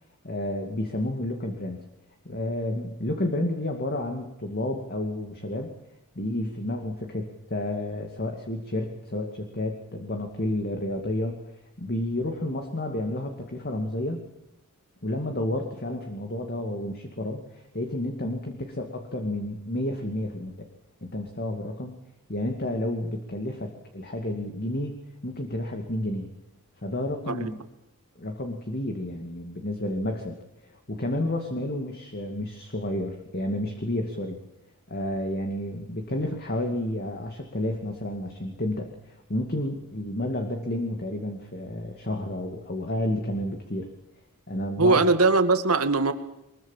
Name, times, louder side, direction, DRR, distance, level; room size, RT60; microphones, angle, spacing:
voice 1, 0.2-1.8 2.2-5.7 6.1-11.5 11.8-14.2 15.0-20.7 21.0-22.0 22.3-25.0 25.2-26.3 26.8-27.6 28.2-34.4 34.9-43.9 44.5-45.1, left 1 dB, 45° left, 4 dB, 2.5 m, -31 dB
voice 2, 44.8-46.1, right 3 dB, 75° right, 8 dB, 2.1 m, -20 dB
24.0 x 22.0 x 7.5 m, 0.90 s
head